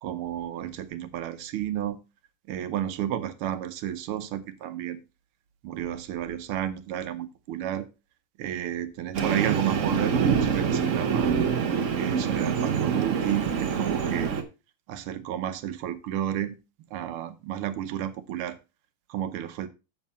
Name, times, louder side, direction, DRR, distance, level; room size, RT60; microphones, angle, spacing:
voice 1, 0.0-2.0 2.5-5.0 5.6-7.9 8.4-11.4 11.9-14.3 14.9-16.6 16.9-18.6 19.1-19.7, right 11 dB, 85° right, 1.7 m, -31 dB
Train, 9.1-14.4, right 6 dB, 50° right, 1.0 m, -25 dB
7.4 x 7.1 x 4.2 m
omnidirectional pair, 2.3 m